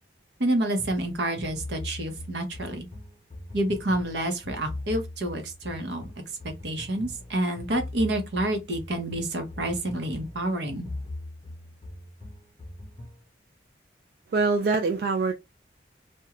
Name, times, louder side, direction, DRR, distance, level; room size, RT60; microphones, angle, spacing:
voice 1, 0.4-2.9 3.5-6.1 6.4-10.9, right 1 dB, 80° right, 0.8 m, -28 dB
sound 1, 0.8-13.2, left 1 dB, 35° left, 0.6 m, -41 dB
voice 2, 14.3-15.3, right 3 dB, 60° right, 0.3 m, -24 dB
2.4 x 2.2 x 2.9 m
head